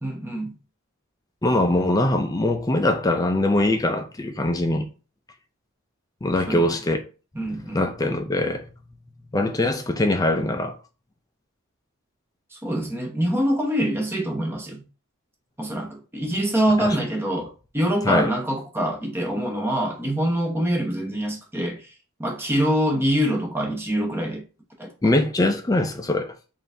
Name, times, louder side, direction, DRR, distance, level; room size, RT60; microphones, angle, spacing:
voice 1, 0.0-0.5 6.5-6.6 7.4-7.8 12.5-14.8 15.6-21.9 22.2-24.4 24.8-25.1, equal, 10° right, 0.8 m, -25 dB
voice 2, 1.4-4.9 6.2-7.0 7.7-8.7 9.3-10.8 16.8-17.0 18.0-18.3 25.0-26.3, left 1 dB, 15° left, 0.4 m, -22 dB
3.8 x 2.6 x 3.4 m
head